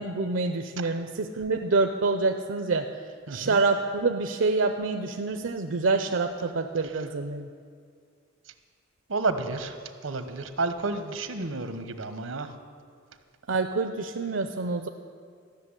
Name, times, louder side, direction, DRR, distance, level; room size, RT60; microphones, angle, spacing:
voice 1, 0.0-2.9 3.3-7.5 13.5-14.9, right 3 dB, 70° right, 6 dB, 0.6 m, -27 dB
voice 2, 3.3-3.6 9.1-9.8 10.0-12.5, right 3 dB, 90° right, 9 dB, 1.1 m, -30 dB
13.5 x 6.7 x 9.7 m, 2.1 s
head